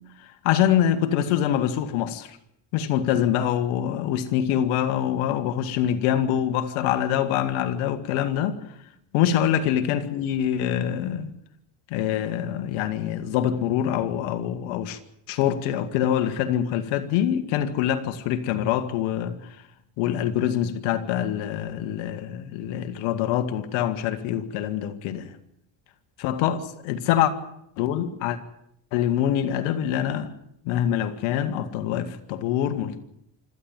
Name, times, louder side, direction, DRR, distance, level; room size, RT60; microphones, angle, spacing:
voice 1, 0.4-2.4 2.7-8.6 9.1-11.3 11.9-15.0 15.3-19.4 20.0-25.4 26.2-27.3 27.8-28.4 28.9-30.3 30.7-33.0, left 10 dB, 85° left, 1.9 m, -25 dB
26.0 x 13.5 x 9.0 m
supercardioid pair, 75°, 46 cm